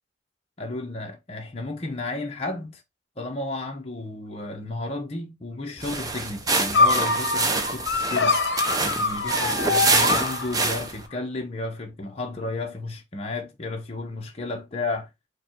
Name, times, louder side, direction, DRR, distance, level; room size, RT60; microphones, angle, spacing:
voice 1, 0.6-2.8 3.2-8.4 8.8-15.1, left 2 dB, 30° left, 0.7 m, -33 dB
sound 1, 5.8-11.1, right 3 dB, 20° right, 0.5 m, -26 dB
sound 2, 6.7-10.9, left 3 dB, 60° left, 0.8 m, -24 dB
4.9 x 2.2 x 4.3 m
head